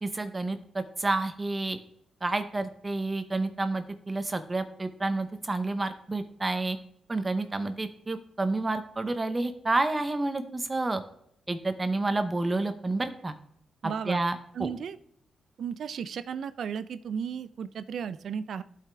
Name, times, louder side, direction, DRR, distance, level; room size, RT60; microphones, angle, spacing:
voice 1, 0.0-1.8 2.2-6.8 7.1-11.0 11.5-13.3 14.1-14.7, right 2 dB, 25° right, 9 dB, 0.6 m, -29 dB
voice 2, 13.8-14.2 14.5-15.0 15.6-18.6, right 7 dB, 70° right, 13 dB, 0.3 m, -34 dB
12.0 x 5.0 x 3.3 m, 0.73 s
cardioid pair, 90°, 0 cm